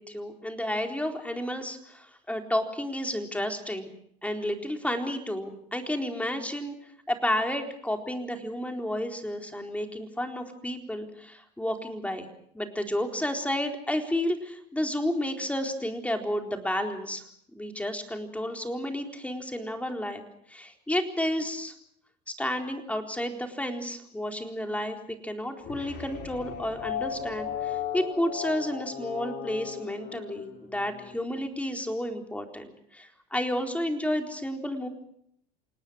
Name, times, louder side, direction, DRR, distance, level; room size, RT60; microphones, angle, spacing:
voice 1, 0.0-3.9 4.2-6.7 7.1-12.3 12.5-17.2 17.5-20.2 20.5-21.7 22.3-25.0 25.2-34.9, left 1 dB, 5° left, 4 dB, 4.1 m, -31 dB
sound 1, 25.6-31.2, left 9 dB, 60° left, 5.2 m, -36 dB
28.5 x 19.0 x 6.4 m, 0.70 s
hypercardioid pair, 80°, 21 cm